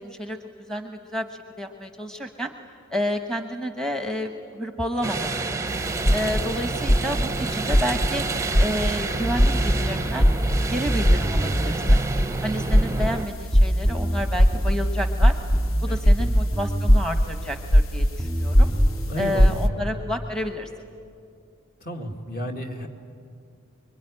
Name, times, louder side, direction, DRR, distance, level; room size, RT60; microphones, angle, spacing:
voice 1, 0.0-0.4 0.7-2.5 2.9-5.6 6.1-8.2 8.6-10.3 10.7-12.0 12.4-15.3 15.8-18.7 19.2-20.7, equal, 5° left, 5 dB, 1.0 m, -30 dB
sound 1, 5.0-13.3, right 3 dB, 15° right, 0.7 m, -29 dB
sound 2, 5.7-19.7, equal, 70° left, 1.0 m, -22 dB
sound 3, 9.2-11.8 13.5-17.1 18.2-19.9, equal, 20° left, 2.2 m, -27 dB
voice 2, 15.9-16.3 19.1-19.9 21.8-22.9, equal, 45° left, 3 dB, 2.2 m, -33 dB
26.0 x 22.5 x 9.9 m, 2.4 s
head